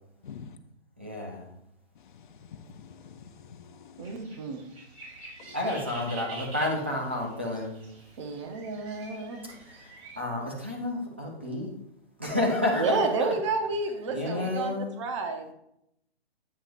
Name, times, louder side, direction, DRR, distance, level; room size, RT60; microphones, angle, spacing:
voice 1, 1.0-1.5 5.5-7.8 9.4-11.7 12.2-13.4 14.1-14.9, left 1 dB, 10° right, 0.4 m, -30 dB
voice 2, 2.2-4.1 5.4-5.5, left 7 dB, 50° left, 0.7 m, -47 dB
voice 3, 4.0-4.7 8.2-9.5 12.7-15.5, right 3 dB, 30° right, 0.7 m, -30 dB
sound 1, 4.0-10.2, right 2 dB, 70° right, 2.8 m, -47 dB
8.6 x 6.0 x 2.5 m
hypercardioid pair, 160°, 32 cm